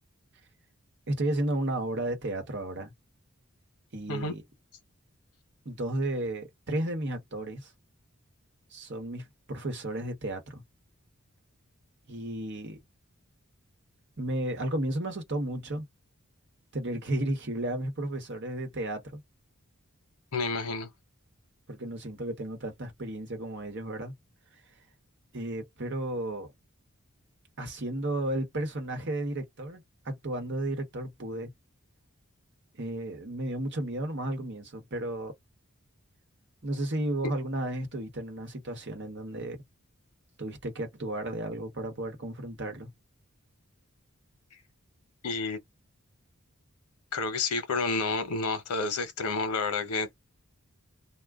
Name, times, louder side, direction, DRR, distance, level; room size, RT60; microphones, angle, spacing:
voice 1, 1.1-2.9 3.9-4.4 5.6-7.7 8.7-10.6 12.1-12.8 14.2-15.8 16.7-19.2 21.7-24.1 25.3-26.5 27.6-31.5 32.8-35.3 36.6-39.6 40.4-42.9, right 1 dB, 50° right, 1.0 m, -33 dB
voice 2, 20.3-20.9 45.2-45.6 47.1-50.1, left 3 dB, 90° left, 0.8 m, -30 dB
2.4 x 2.1 x 3.4 m
head